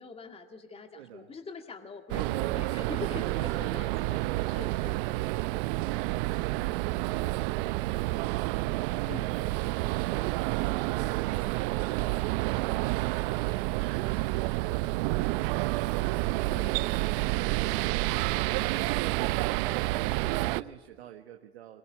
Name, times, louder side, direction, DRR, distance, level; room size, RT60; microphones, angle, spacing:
voice 1, 0.0-5.2 9.0-9.4 16.5-16.8 19.2-19.3, left 4 dB, 20° left, 5 dB, 2.2 m, -44 dB
voice 2, 0.9-1.3 5.1-8.7 10.4-12.8 13.2-14.3 15.0-16.1 16.5-18.5 19.0-21.8, right 11 dB, 80° right, 5 dB, 1.5 m, -48 dB
sound 1, 2.1-20.6, right 20 dB, 60° right, 0.7 m, -29 dB
22.5 x 22.0 x 9.0 m, 1.3 s
hypercardioid pair, 95°, 31 cm